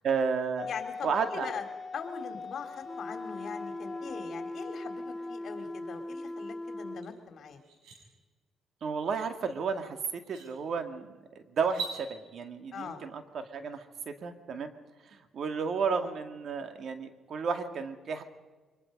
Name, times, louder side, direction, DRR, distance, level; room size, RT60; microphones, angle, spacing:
voice 1, 0.0-0.7 1.0-1.5 8.8-14.7 15.1-18.2, right 5 dB, 60° right, 8 dB, 2.1 m, -33 dB
Wind instrument woodwind instrument, 0.6-6.2, left 5 dB, 25° left, 6.7 m, -43 dB
voice 2, 0.7-1.6 1.9-7.6 12.7-13.0, left 6 dB, 60° left, 6 dB, 3.2 m, -41 dB
sound 1, 2.8-7.1, left 2 dB, 5° left, 0.9 m, -39 dB
sound 2, 7.0-7.1 7.5-8.0 9.6-9.7 10.2-10.5 11.6-12.0, right 5 dB, 85° right, 7.0 m, -39 dB
24.0 x 21.0 x 5.4 m, 1.3 s
cardioid pair, 90°, 0 cm